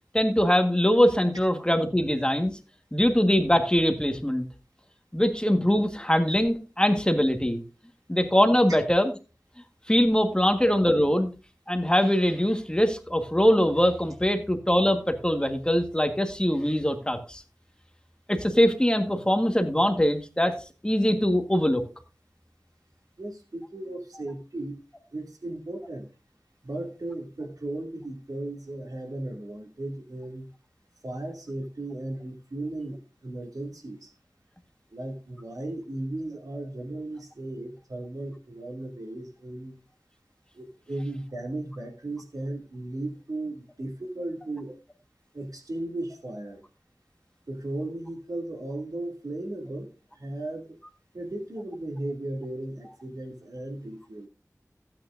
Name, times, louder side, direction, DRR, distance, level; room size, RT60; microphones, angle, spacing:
voice 1, 0.1-2.5 2.9-4.5 5.1-7.6 8.1-9.1 9.9-11.3 11.7-17.4 18.3-20.6 20.8-21.8, equal, 15° left, 6 dB, 1.6 m, -22 dB
voice 2, 23.2-24.8 25.1-26.1 26.6-30.5 31.0-34.1 34.9-39.8 40.5-44.8 45.3-46.6 47.5-50.8 51.1-54.3, right 1 dB, 80° right, 2 dB, 2.5 m, -36 dB
15.5 x 8.9 x 2.6 m, 0.32 s
wide cardioid pair, 45°, 6 cm